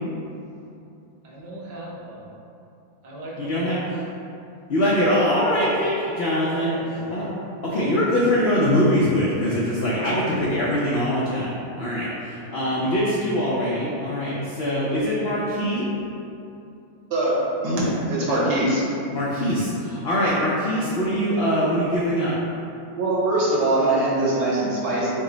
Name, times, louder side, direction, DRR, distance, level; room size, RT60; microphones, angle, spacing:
voice 1, 1.2-2.3 3.0-3.9 5.8-5.9 6.5-6.9, right 1 dB, 45° right, -5 dB, 0.6 m, -38 dB
voice 2, 3.4-3.8 4.7-6.7 7.1-7.3 7.6-11.5 11.8-15.9 19.1-22.3, equal, 70° left, -7 dB, 0.6 m, -23 dB
voice 3, 17.1-18.8 23.0-25.1, right 1 dB, 75° right, -7 dB, 1.7 m, -22 dB
6.2 x 2.1 x 3.8 m, 2.7 s
omnidirectional pair, 1.8 m